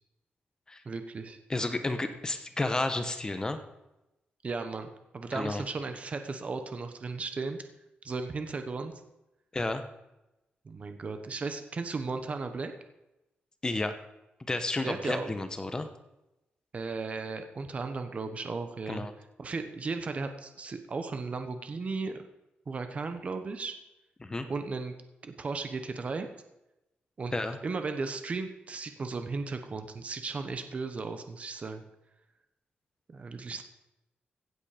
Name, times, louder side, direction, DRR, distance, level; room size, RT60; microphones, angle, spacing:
voice 1, 0.8-1.4 4.4-7.6 8.0-8.9 10.6-12.7 14.8-15.3 16.7-19.1 19.4-22.2 22.7-23.7 24.5-24.9 25.2-26.3 27.2-27.3 27.6-31.8 33.1-33.6, right 4 dB, 40° right, 8 dB, 1.2 m, -35 dB
voice 2, 1.5-3.6 5.3-5.6 9.5-9.8 13.6-13.9 14.5-15.9 18.9-19.1 24.2-24.5 27.3-27.6, left 2 dB, 20° left, 8 dB, 1.0 m, -31 dB
16.0 x 8.5 x 5.1 m, 0.94 s
wide cardioid pair, 125°, 4 cm